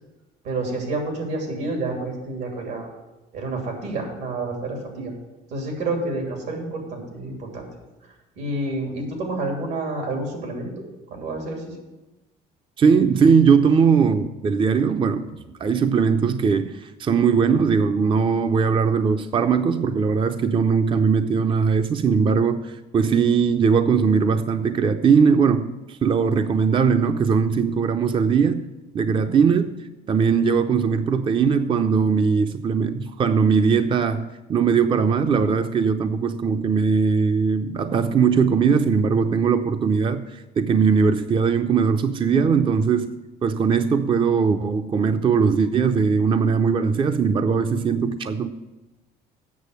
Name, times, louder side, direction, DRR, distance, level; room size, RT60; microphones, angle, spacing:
voice 1, 0.4-2.9 3.3-5.1 5.5-7.7 8.4-10.8 11.1-11.8 29.1-29.4, right 2 dB, 85° right, 2 dB, 2.9 m, -29 dB
voice 2, 12.8-28.7 28.9-29.8 30.1-48.5, right 6 dB, 30° right, 9 dB, 0.4 m, -20 dB
8.4 x 6.6 x 8.0 m, 1.1 s
cardioid pair, 110°, 17 cm